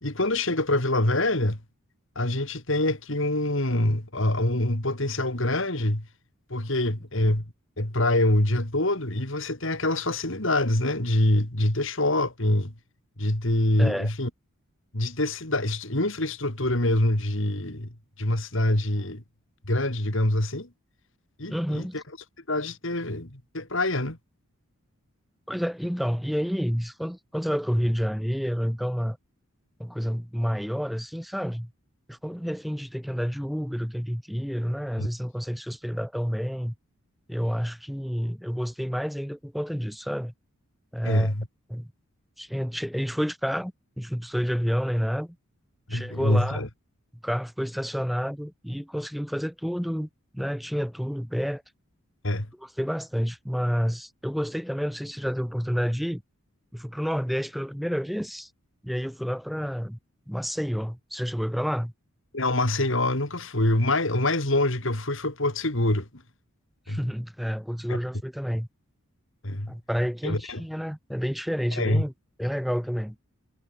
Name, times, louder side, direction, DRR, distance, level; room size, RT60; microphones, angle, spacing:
voice 1, 0.0-1.6 2.1-6.0 6.5-7.4 7.8-12.7 13.2-14.3 14.9-17.9 18.2-19.2 19.7-20.7 21.4-22.0 22.5-24.2 35.0-35.1 41.0-41.5 45.9-46.7 52.2-52.5 62.3-66.1 66.9-67.0 67.9-68.0 69.4-69.7 70.2-70.6 71.8-72.0, left 1 dB, 60° left, 3.3 m, -25 dB
voice 2, 13.8-14.1 21.5-22.0 25.5-29.2 29.8-31.7 32.1-36.7 37.3-40.3 40.9-41.3 41.7-41.9 42.4-45.4 45.9-46.6 47.2-50.1 50.3-51.6 52.6-56.2 56.7-58.5 58.8-60.0 60.3-61.9 66.9-68.7 69.7-72.1 72.4-73.2, equal, ahead, 5.4 m, -29 dB
head